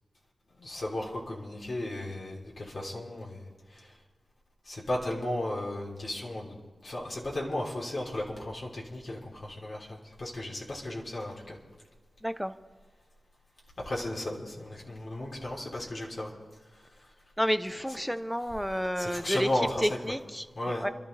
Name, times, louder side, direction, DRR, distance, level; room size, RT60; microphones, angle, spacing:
voice 1, 0.6-4.0 4.6-6.5 6.8-11.6 13.8-16.3 16.7-17.1 17.9-18.0 18.9-20.2 20.5-20.9, left 1 dB, 55° left, -4 dB, 3.5 m, -35 dB
voice 2, 12.2-12.5 17.4-19.5 19.8-20.4 20.8-20.9, equal, ahead, 11 dB, 0.8 m, -30 dB
28.5 x 12.5 x 3.4 m, 1.4 s
cardioid pair, 65°, 0 cm